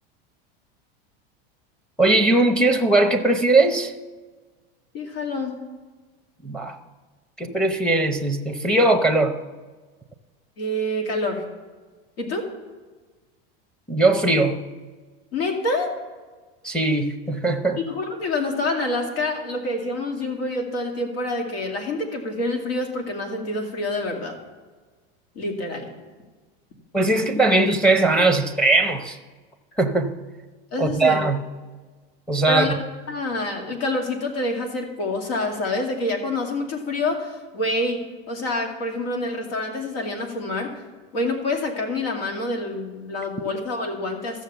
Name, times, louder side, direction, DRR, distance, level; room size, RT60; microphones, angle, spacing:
voice 1, 2.0-3.9 6.4-6.8 7.4-9.4 13.9-14.6 16.6-17.8 26.9-29.2 29.8-30.1 30.8-31.5 32.3-32.8, right 2 dB, 5° left, 6 dB, 0.7 m, -20 dB
voice 2, 4.9-5.5 10.6-11.4 12.2-12.5 15.3-15.9 17.8-24.4 25.3-25.9 30.7-31.2 32.5-32.8 33.1-40.8 41.1-44.4, left 2 dB, 85° left, 3 dB, 2.4 m, -27 dB
14.0 x 6.5 x 6.8 m, 1.3 s
supercardioid pair, 135°, 29 cm